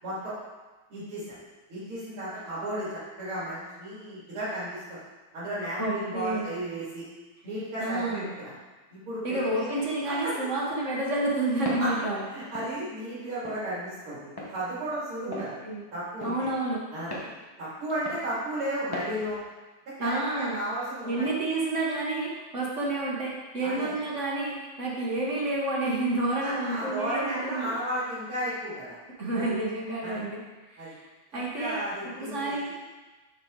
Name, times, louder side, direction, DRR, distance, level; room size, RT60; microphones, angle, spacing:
voice 1, 0.0-0.3 0.9-1.2 1.7-5.0 5.3-7.0 7.4-8.5 8.9-9.7 10.1-10.3 11.6-11.9 12.3-15.6 15.9-16.5 16.9-17.1 17.6-19.4 20.0-21.3 23.6-23.9 26.4-29.0 29.3-29.5 30.0-30.2 30.8-30.9 31.6-32.7, right 1 dB, 85° right, -11 dB, 3.5 m, -34 dB
voice 2, 5.8-6.5 7.8-8.3 9.2-12.3 15.3-15.8 16.2-16.8 20.0-20.6 21.0-27.7 29.2-30.4 30.7-31.0 31.3-31.8 32.1-32.7, right 2 dB, 40° right, -3 dB, 1.3 m, -29 dB
Walk footsteps, 11.7-11.9 12.5-12.7 13.4-13.6 14.4-14.5 15.3-15.5 16.2-16.4 17.1-17.3 18.1-18.3 18.9-19.1, left 1 dB, 20° left, 0.6 m, -36 dB
7.3 x 6.5 x 3.8 m, 1.2 s
omnidirectional pair, 2.3 m